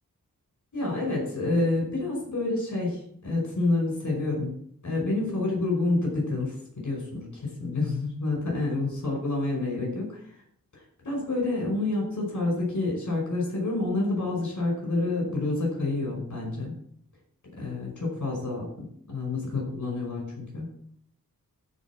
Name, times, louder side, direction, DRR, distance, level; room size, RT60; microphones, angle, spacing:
voice 1, 0.7-4.6 4.8-10.2 10.7-16.7 17.6-20.8, left 2 dB, 55° left, -1 dB, 5.3 m, -28 dB
14.0 x 5.1 x 7.2 m, 0.65 s
wide cardioid pair, 105°, 35 cm